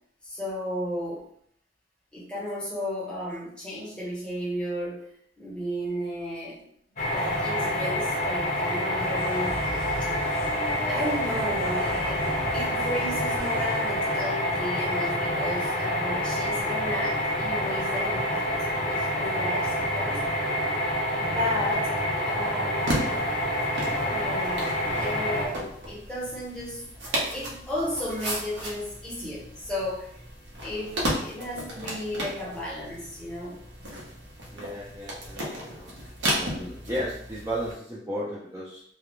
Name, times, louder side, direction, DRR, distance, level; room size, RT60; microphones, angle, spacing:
voice 1, 0.2-1.2 2.1-5.1 5.4-6.6 7.1-10.1 10.8-12.2 12.5-18.5 18.9-20.2 21.2-21.9 22.2-23.2 24.0-30.1 30.6-33.6, equal, 5° left, -7 dB, 0.7 m, -33 dB
sound 1, 7.0-25.5, left 1 dB, 40° left, 0.5 m, -27 dB
sound 2, 9.0-14.0, equal, 35° right, 0.7 m, -39 dB
sound 3, 22.7-37.7, equal, 70° right, 0.7 m, -34 dB
voice 2, 34.5-35.9 36.4-38.8, equal, 15° right, -8 dB, 0.4 m, -34 dB
2.3 x 2.1 x 2.9 m, 0.67 s
head